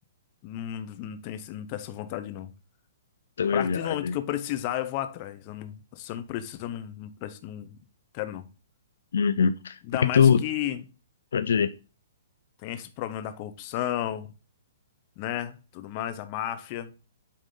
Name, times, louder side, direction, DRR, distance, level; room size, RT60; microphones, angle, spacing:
voice 1, 0.4-2.5 3.5-7.8 8.1-8.5 9.8-10.8 12.6-14.3 15.2-16.9, left 12 dB, 35° left, 0.8 m, -33 dB
voice 2, 3.4-4.1 9.1-9.8 10.0-10.4 11.3-11.7, left 6 dB, 80° left, 0.5 m, -22 dB
8.5 x 3.6 x 3.8 m
hypercardioid pair, 150°, 0 cm